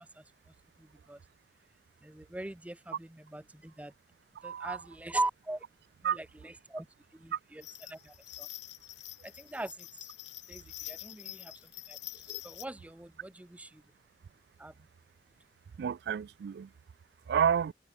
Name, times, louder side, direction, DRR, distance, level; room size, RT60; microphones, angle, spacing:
voice 1, 0.8-1.2 2.0-3.9 4.4-5.6 6.0-6.9 7.1-8.5 9.2-9.9 10.5-11.5 11.9-12.0 12.3-13.8 14.6-14.7, right 2 dB, 10° right, 0.5 m, -40 dB
voice 2, 4.4-4.8 6.0-6.2 7.3-7.4 15.8-16.7 17.3-17.7, right 8 dB, 65° right, 0.3 m, -30 dB
sound 1, 7.6-12.7, left 16 dB, 90° left, 1.5 m, -46 dB
head